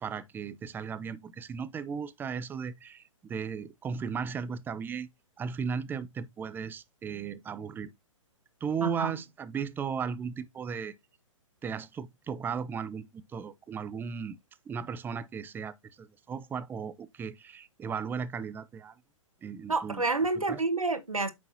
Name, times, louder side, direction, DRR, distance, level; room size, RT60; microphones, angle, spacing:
voice 1, 0.0-5.1 5.4-7.9 8.6-10.9 11.6-14.4 14.7-18.9 19.4-20.0 20.5-20.6, right 6 dB, 10° right, 0.5 m, -36 dB
voice 2, 8.8-9.1 19.7-21.3, right 3 dB, 90° right, 1.4 m, -29 dB
8.8 x 6.3 x 2.8 m
figure-of-eight pair, 120°, 17 cm